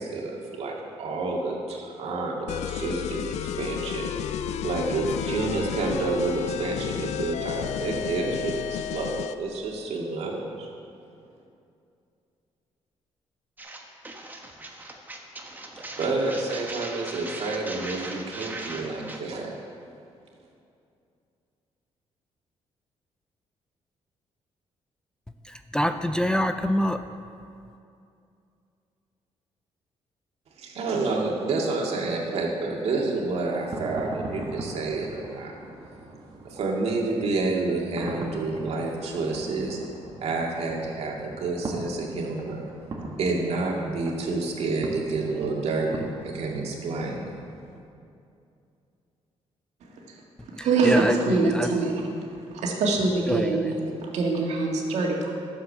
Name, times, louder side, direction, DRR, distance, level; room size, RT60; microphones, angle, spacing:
voice 1, 0.0-4.1 4.3-10.7 16.0-19.5 30.6-35.5 36.4-39.8 40.2-42.7 43.2-47.3, right 3 dB, 65° right, -1 dB, 2.1 m, -29 dB
sound 1, 2.5-9.4, left 10 dB, 80° left, 0.4 m, -32 dB
sound 2, 13.6-19.2, right 2 dB, 15° right, 1.2 m, -39 dB
voice 2, 25.7-27.0 50.9-51.7 53.3-53.5, equal, 5° left, 8 dB, 0.4 m, -24 dB
sound 3, 33.2-47.8, right 2 dB, 40° right, 1.7 m, -40 dB
voice 3, 49.8-50.2 50.6-52.1 52.6-55.3, right 3 dB, 85° right, -1 dB, 1.9 m, -24 dB
12.0 x 7.4 x 6.6 m, 2.5 s
cardioid pair, 130°, 11 cm